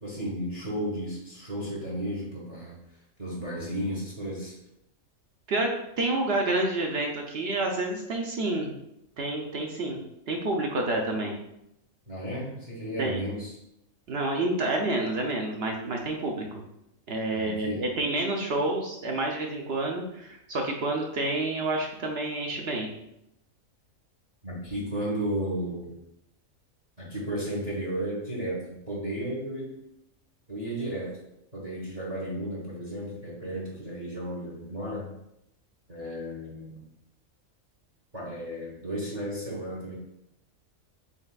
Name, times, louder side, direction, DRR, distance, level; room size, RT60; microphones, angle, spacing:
voice 1, 0.0-2.8 3.2-4.6 12.1-13.5 17.3-17.8 24.4-25.9 27.0-29.8 30.5-31.2 31.5-35.1 35.9-36.8 38.1-39.9, right 1 dB, 30° right, -3 dB, 1.1 m, -33 dB
voice 2, 6.0-8.8 9.2-11.4 13.0-13.2 14.1-16.6 17.1-22.9, right 2 dB, 60° right, 1 dB, 0.8 m, -29 dB
5.4 x 3.5 x 2.3 m, 0.81 s
omnidirectional pair, 1.4 m